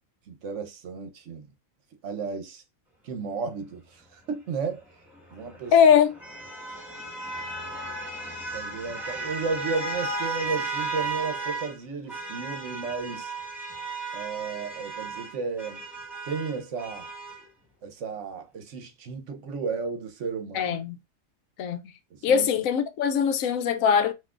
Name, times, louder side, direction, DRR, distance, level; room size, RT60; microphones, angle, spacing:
voice 1, 0.3-1.5 2.0-2.6 3.0-4.8 5.3-5.7 8.5-13.3 14.1-15.8 16.3-17.1 17.8-20.8 22.2-22.5, right 5 dB, 65° right, 1.1 m, -33 dB
sound 1, 5.1-11.8 12.1-17.4, right 3 dB, ahead, 1.5 m, -35 dB
voice 2, 5.7-6.1 20.5-21.0 21.6-21.8 22.2-24.1, left 7 dB, 80° left, 1.0 m, -21 dB
5.7 x 2.7 x 2.4 m
omnidirectional pair, 1.4 m